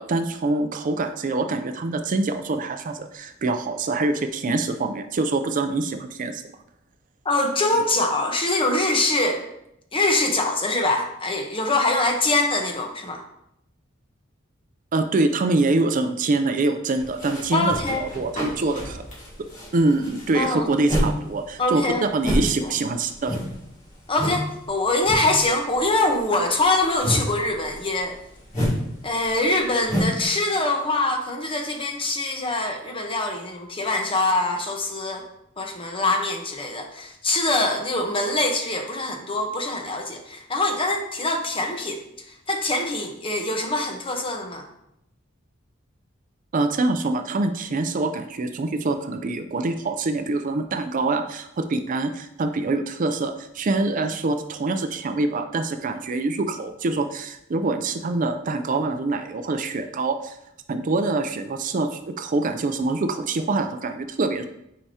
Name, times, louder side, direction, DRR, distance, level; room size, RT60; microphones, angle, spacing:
voice 1, 0.0-6.4 14.9-19.0 19.7-23.4 46.5-60.4 60.7-64.5, right 2 dB, 40° right, 8 dB, 0.4 m, -25 dB
voice 2, 7.2-9.4 9.9-13.2 17.5-18.0 20.3-20.7 21.6-22.7 24.1-28.2 29.0-35.3 35.6-44.7, left 2 dB, 25° left, 3 dB, 0.9 m, -24 dB
sound 1, 17.0-21.2 21.5-24.5 24.7-25.4 25.7-30.2, equal, 40° left, 2.5 m, -29 dB
8.6 x 4.7 x 2.8 m, 0.80 s
head